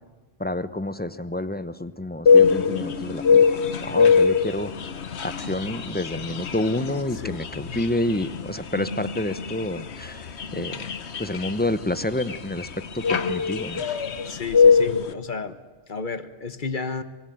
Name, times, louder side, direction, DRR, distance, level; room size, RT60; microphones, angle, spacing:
voice 1, 0.4-3.4 3.8-4.7 5.2-10.9 11.2-13.8, left 1 dB, 10° left, 13 dB, 0.8 m, -29 dB
sound 1, 2.3-15.1, left 5 dB, 85° left, 1.4 m, -22 dB
voice 2, 14.3-15.6 15.9-17.0, left 4 dB, 50° left, 11 dB, 1.3 m, -32 dB
24.5 x 21.0 x 9.3 m, 1.3 s
omnidirectional pair, 1.1 m